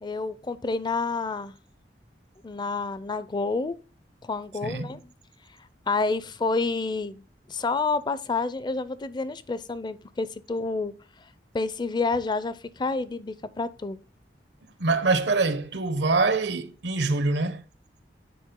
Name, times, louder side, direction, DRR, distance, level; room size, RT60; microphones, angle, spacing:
voice 1, 0.0-1.5 2.4-3.8 4.2-5.0 5.9-10.9 11.5-14.0, left 3 dB, 25° left, 0.4 m, -29 dB
voice 2, 4.6-4.9 14.8-17.6, right 3 dB, 80° right, 0.8 m, -24 dB
9.3 x 4.5 x 3.7 m
head